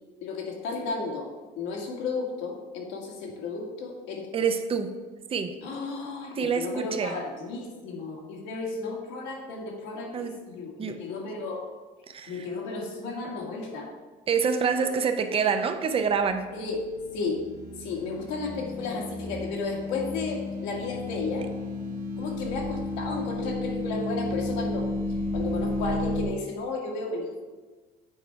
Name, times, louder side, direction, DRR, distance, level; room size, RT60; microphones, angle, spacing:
voice 1, 0.2-1.3 1.6-4.3 5.6-11.6 12.3-13.9 16.5-16.8 17.1-17.4 17.8-21.5 22.2-24.9 25.3-27.4, left 3 dB, 85° left, 0 dB, 1.6 m, -33 dB
voice 2, 4.3-4.9 5.3-5.6 6.4-7.2 10.1-10.3 10.8-11.0 12.1-12.4 14.3-16.5, right 6 dB, 30° right, 7 dB, 0.6 m, -26 dB
sound 1, 16.4-26.3, left 2 dB, 50° right, 1.7 m, -33 dB
7.4 x 4.6 x 4.5 m, 1.3 s
cardioid pair, 105°, 18 cm